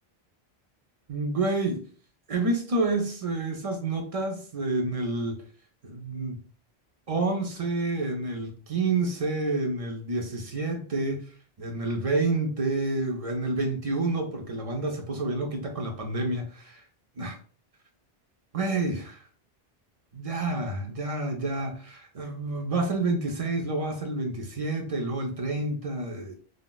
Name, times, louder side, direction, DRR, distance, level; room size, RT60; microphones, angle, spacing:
voice 1, 1.1-1.8 2.3-5.4 5.8-6.4 7.1-11.3 11.6-16.8 17.2-17.4 18.5-19.2 20.1-26.3, right 2 dB, 45° right, 0.5 m, -29 dB
2.4 x 2.1 x 3.8 m
omnidirectional pair, 1.1 m